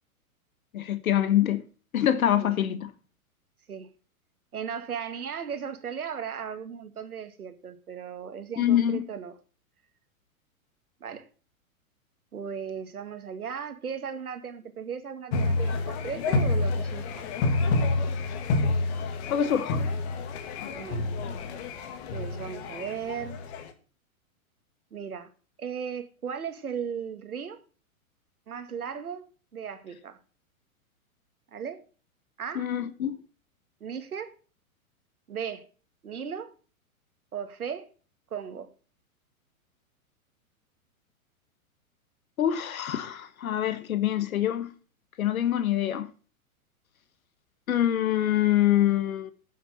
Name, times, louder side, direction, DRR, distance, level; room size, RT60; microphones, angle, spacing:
voice 1, 0.7-1.6 1.9-2.9 8.6-9.0 19.3-19.8 32.5-33.2 42.4-44.7 45.2-46.1 47.7-49.3, left 11 dB, 70° left, 1.4 m, -25 dB
voice 2, 4.5-9.4 11.0-11.3 12.3-17.3 20.7-21.1 22.1-23.5 24.9-25.3 25.6-27.6 28.5-29.3 29.5-30.2 31.5-31.8 32.4-32.7 33.8-34.3 35.3-35.7 36.0-36.5 37.3-37.9 38.3-38.7, right 7 dB, 85° right, 2.1 m, -36 dB
sound 1, 15.3-23.7, left 3 dB, 50° left, 2.2 m, -28 dB
10.0 x 7.0 x 7.7 m
hypercardioid pair, 115°, 43 cm